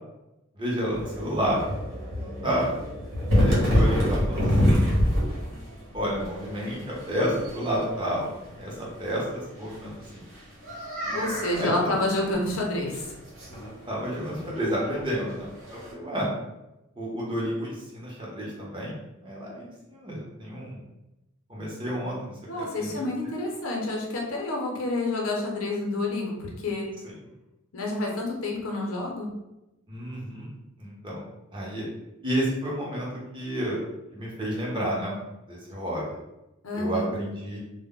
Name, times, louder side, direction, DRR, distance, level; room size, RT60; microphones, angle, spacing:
voice 1, 0.5-1.6 2.1-2.7 3.4-4.8 5.9-8.3 8.6-10.2 11.0-11.9 13.9-16.3 17.0-18.9 19.2-20.8 21.5-23.0 29.9-31.2 31.5-31.8 32.2-33.8 34.1-35.1 35.5-36.0 36.7-37.6, equal, 25° right, -4 dB, 0.7 m, -31 dB
sound 1, 0.9-15.9, equal, 80° right, 1.0 m, -28 dB
voice 2, 11.1-13.1 22.5-26.9 27.7-29.3 36.6-37.1, left 2 dB, 75° left, -1 dB, 0.7 m, -29 dB
2.1 x 2.1 x 3.6 m, 0.95 s
head